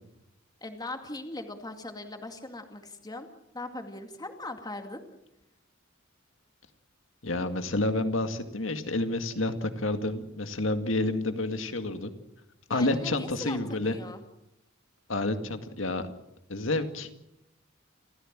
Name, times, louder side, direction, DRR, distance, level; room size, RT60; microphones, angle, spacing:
voice 1, 0.6-3.3 3.5-5.0 12.7-13.6 13.9-14.2, left 2 dB, 20° left, 5 dB, 2.2 m, -39 dB
voice 2, 7.2-12.1 12.7-14.0 15.1-16.1 16.5-17.1, left 2 dB, 70° left, 8 dB, 2.1 m, -29 dB
28.5 x 15.0 x 7.5 m, 0.87 s
head